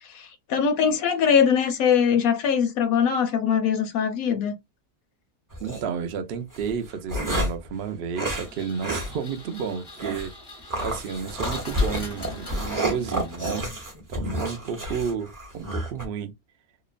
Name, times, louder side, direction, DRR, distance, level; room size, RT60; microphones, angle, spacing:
voice 1, 0.1-4.6, left 7 dB, 70° left, 1.0 m, -22 dB
sound 1, 5.5-5.8 6.5-7.7 8.1-8.5 8.8-9.1 9.4-9.5 10.0-10.3 10.7-16.1, equal, 25° right, 0.5 m, -29 dB
voice 2, 5.6-10.3 10.8-13.7 14.1-16.3, right 6 dB, 70° right, 0.5 m, -31 dB
Engine, 8.3-14.0, left 1 dB, 25° left, 0.5 m, -42 dB
2.9 x 2.0 x 2.4 m
omnidirectional pair, 1.6 m